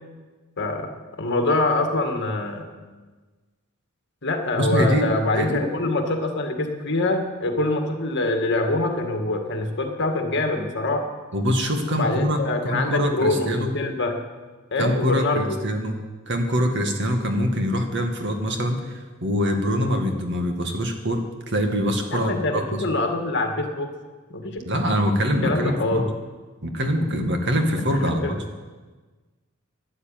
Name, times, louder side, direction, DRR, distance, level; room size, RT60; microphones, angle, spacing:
voice 1, 0.6-0.9 1.2-2.6 4.2-11.1 11.9-14.2 14.7-15.6 22.1-23.9 24.3-24.6 25.4-26.1 27.9-28.4, left 2 dB, 55° left, 4 dB, 2.0 m, -24 dB
voice 2, 4.6-5.1 5.3-5.6 11.3-13.7 14.8-16.0 16.3-22.8 24.6-26.0 26.6-28.4, equal, 55° right, 4 dB, 2.1 m, -24 dB
12.5 x 11.5 x 9.1 m, 1.3 s
head